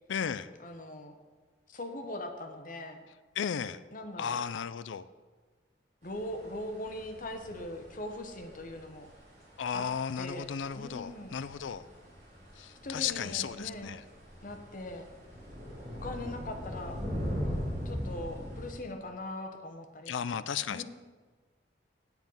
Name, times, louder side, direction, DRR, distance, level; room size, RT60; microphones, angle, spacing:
voice 1, 0.1-0.5 3.4-3.8 4.2-5.1 9.6-11.8 12.6-14.0 20.1-20.8, left 7 dB, 85° left, 16 dB, 0.4 m, -34 dB
voice 2, 0.6-1.1 1.7-3.0 3.9-4.4 6.0-9.1 9.7-9.9 10.2-10.5 10.7-11.3 12.8-13.9 14.4-15.1 16.0-17.0 17.8-20.8, left 1 dB, 45° left, 5 dB, 1.0 m, -41 dB
sound 1, 6.0-18.7, equal, 40° right, 3.4 m, -41 dB
9.2 x 7.2 x 5.5 m, 1.4 s
head